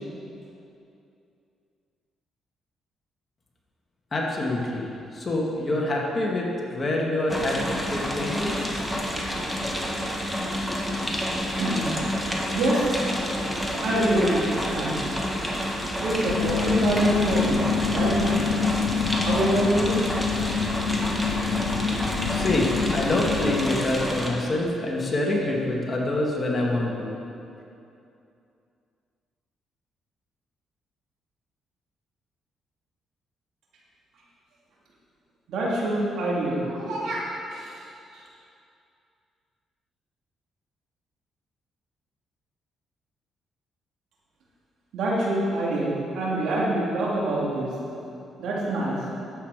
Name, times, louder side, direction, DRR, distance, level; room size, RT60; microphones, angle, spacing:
voice 1, 4.1-6.5 6.7-7.6 7.9-8.6 22.3-27.1, left 2 dB, 30° left, -2 dB, 2.2 m, -26 dB
sound 1, 7.3-24.3, equal, ahead, 1.8 m, -29 dB
voice 2, 12.5-12.9 13.8-15.0 16.0-18.5 19.2-20.0 35.5-37.7 38.1-38.2 44.9-47.7 48.4-49.0, right 1 dB, 75° right, -5 dB, 2.9 m, -25 dB
sound 2, 16.2-23.6, left 6 dB, 80° left, 0.5 m, -27 dB
11.5 x 8.4 x 5.2 m, 2.7 s
cardioid pair, 90°, 0 cm